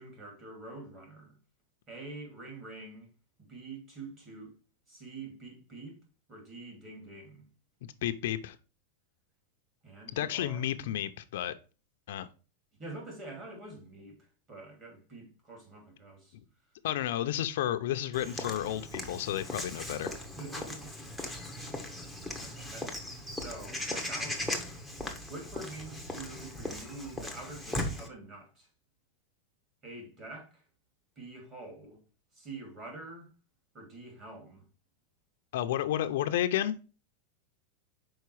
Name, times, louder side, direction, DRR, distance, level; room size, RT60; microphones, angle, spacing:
voice 1, 0.0-1.4 1.9-3.1 3.4-4.5 4.9-6.0 6.3-7.4 9.8-11.0 12.8-16.3 20.4-20.9 21.5-22.1 22.4-28.7 29.8-30.6 31.2-32.0 32.3-33.3 33.7-34.6, right 2 dB, 25° right, 2.6 m, -46 dB
voice 2, 8.0-8.6 10.1-11.5 12.1-12.3 16.8-20.1 35.5-36.7, left 12 dB, 65° left, 0.5 m, -31 dB
Walk footsteps / Bird vocalization bird call bird song, 18.1-28.1, left 1 dB, 5° right, 0.9 m, -38 dB
5.7 x 4.6 x 4.7 m
supercardioid pair, 165°, 0 cm